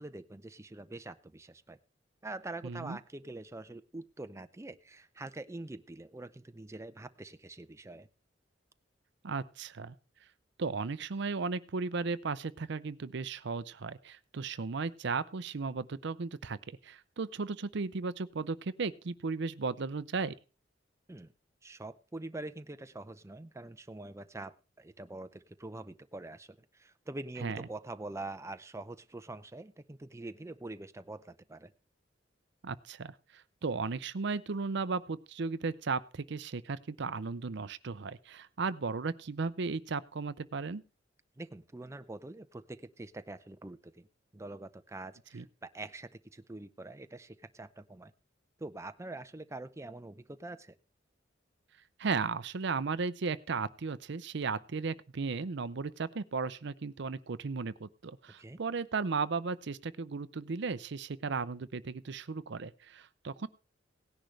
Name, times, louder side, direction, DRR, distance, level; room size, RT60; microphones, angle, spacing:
voice 1, 0.0-1.8 2.2-8.1 21.1-21.3 21.6-31.7 41.4-44.1 44.3-48.1 48.6-50.8 58.3-58.6, right 2 dB, 15° right, 10 dB, 0.5 m, -45 dB
voice 2, 2.6-3.0 9.2-9.9 10.6-16.6 16.8-20.3 27.4-27.6 32.6-40.8 45.3-45.5 52.0-63.5, right 4 dB, 65° right, 15 dB, 0.6 m, -35 dB
17.5 x 10.5 x 3.3 m, 0.33 s
head